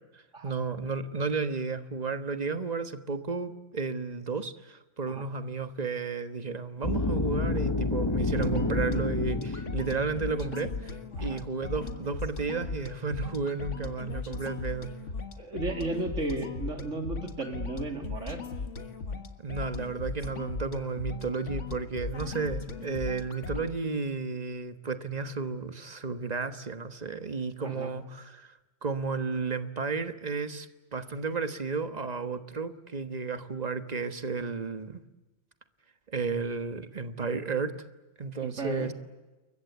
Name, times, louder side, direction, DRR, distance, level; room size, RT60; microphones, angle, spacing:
voice 1, 0.1-10.9 11.2-14.9 19.4-35.0 36.1-37.7 38.2-38.9, right 4 dB, 35° right, 10 dB, 1.5 m, -33 dB
sound 1, 6.8-10.8, left 3 dB, 20° left, 1.2 m, -30 dB
sound 2, 8.0-23.7, left 4 dB, 80° left, 2.0 m, -38 dB
voice 2, 15.4-18.4 27.6-27.9 38.4-38.9, right 2 dB, 85° right, 5 dB, 3.3 m, -34 dB
28.5 x 23.0 x 8.2 m, 1.1 s
omnidirectional pair, 1.2 m